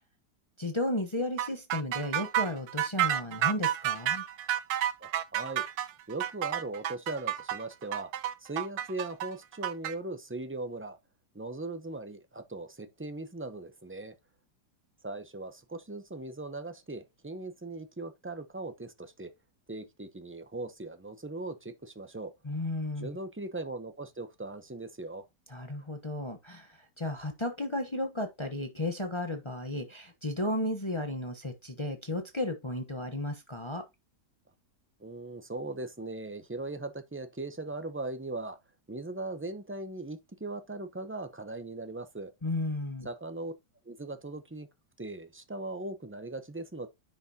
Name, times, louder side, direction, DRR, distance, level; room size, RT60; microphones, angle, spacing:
voice 1, 0.6-4.2 22.4-23.1 25.5-33.9 42.4-43.1, left 1 dB, 20° left, 0.9 m, -34 dB
sound 1, 1.4-9.9, right 11 dB, 70° right, 1.2 m, -30 dB
voice 2, 5.0-5.6 6.1-8.1 8.4-11.0 11.3-14.1 15.0-19.3 19.7-22.3 23.0-25.3 35.0-38.6 38.9-42.3 43.0-43.5 43.8-44.7 45.0-46.9, right 2 dB, 15° right, 0.4 m, -39 dB
10.5 x 5.9 x 2.9 m
omnidirectional pair, 1.8 m